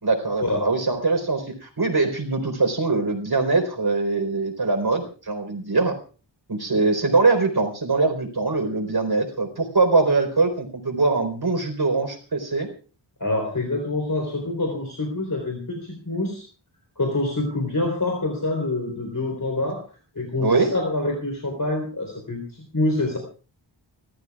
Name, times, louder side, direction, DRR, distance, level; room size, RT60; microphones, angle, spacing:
voice 1, 0.0-6.0 6.5-12.7 20.4-20.7, right 3 dB, 55° right, 4 dB, 4.2 m, -22 dB
voice 2, 13.2-16.5 17.0-19.8 20.2-23.2, left 2 dB, 45° left, 2 dB, 3.9 m, -26 dB
30.0 x 14.0 x 2.4 m, 0.37 s
wide cardioid pair, 60°, 47 cm